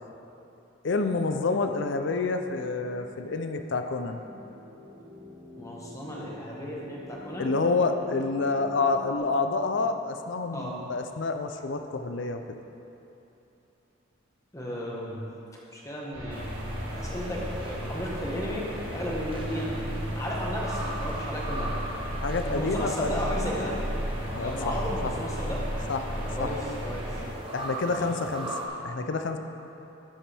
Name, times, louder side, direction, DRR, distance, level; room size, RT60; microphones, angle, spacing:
voice 1, 0.8-4.2 7.4-12.4 22.2-23.1 24.3-24.8 25.0-25.1 25.9-26.0 26.4-26.5 27.5-28.5 28.8-29.4, left 3 dB, 55° left, 7 dB, 0.5 m, -28 dB
sound 1, 1.6-9.2, left 1 dB, 40° right, 1.5 m, -46 dB
voice 2, 5.6-7.5 10.5-10.7 14.5-15.2 15.7-16.5 16.9-19.7 20.1-21.7 22.4-23.7 24.4-25.6 26.1-26.5 26.8-27.0 27.8-28.0, equal, 15° left, -4 dB, 1.1 m, -34 dB
sound 2, 16.1-27.3, equal, 75° right, 1.7 m, -34 dB
sound 3, 16.3-28.7, right 2 dB, 25° right, 0.9 m, -41 dB
11.0 x 7.3 x 3.4 m, 2.9 s
head